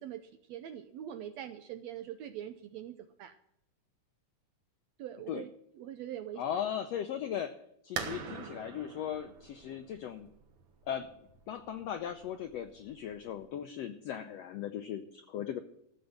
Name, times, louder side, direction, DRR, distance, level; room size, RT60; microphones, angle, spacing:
voice 1, 0.0-3.4 5.0-6.4, right 11 dB, 75° right, 9 dB, 1.6 m, -43 dB
voice 2, 6.4-7.5 7.8-10.3 10.9-11.1 11.5-15.6, left 9 dB, 85° left, 8 dB, 1.4 m, -38 dB
sound 1, 8.0-13.4, right 6 dB, 55° right, 1.8 m, -44 dB
14.0 x 8.1 x 7.7 m, 0.75 s
omnidirectional pair, 3.7 m